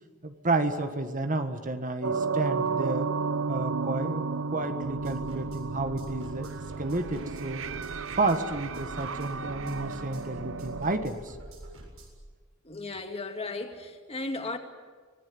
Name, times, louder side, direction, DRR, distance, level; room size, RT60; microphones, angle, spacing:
voice 1, 0.2-3.1 3.5-6.5 6.8-7.6 8.1-11.4, right 2 dB, 40° right, 1.5 m, -31 dB
sound 1, 2.0-11.1, right 5 dB, 70° right, 0.7 m, -33 dB
sound 2, 4.8-12.2, right 1 dB, 90° right, 7.2 m, -46 dB
voice 2, 12.6-14.6, left 2 dB, 30° left, 2.2 m, -35 dB
25.5 x 18.5 x 9.5 m
head